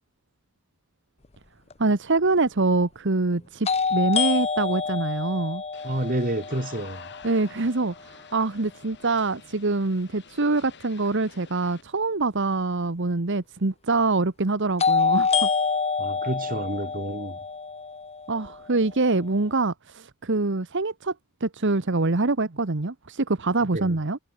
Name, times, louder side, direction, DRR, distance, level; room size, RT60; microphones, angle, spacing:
sound 1, 1.7-1.8 3.7-7.6 14.8-18.8, left 5 dB, 30° left, 1.1 m, -27 dB
voice 1, 1.8-5.6 7.2-15.5 18.3-21.1 21.4-24.2, right 3 dB, 55° right, 1.2 m, -25 dB
sound 2, 5.7-11.8, left 6 dB, 55° left, 4.1 m, -49 dB
voice 2, 5.8-7.1 16.0-17.4 23.6-24.0, right 1 dB, 40° right, 2.6 m, -29 dB
head